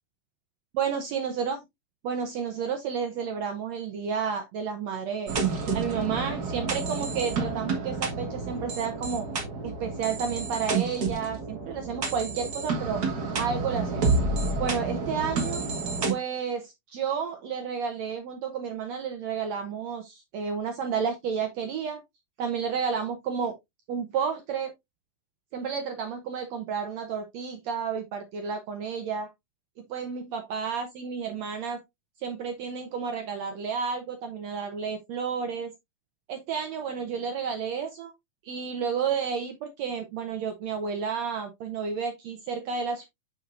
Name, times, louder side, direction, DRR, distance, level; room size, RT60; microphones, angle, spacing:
voice 1, 0.7-1.6 2.0-5.3 5.7-9.3 9.6-13.0 13.4-14.1 14.6-15.6 16.1-22.0 22.4-23.5 23.9-24.7 25.5-29.3 29.9-31.8 32.2-35.7 36.3-38.1 38.4-43.1, right 6 dB, 70° right, 1.6 m, -31 dB
sound 1, 5.3-16.1, right 4 dB, 55° right, 1.1 m, -29 dB
7.5 x 6.2 x 2.5 m
omnidirectional pair, 4.1 m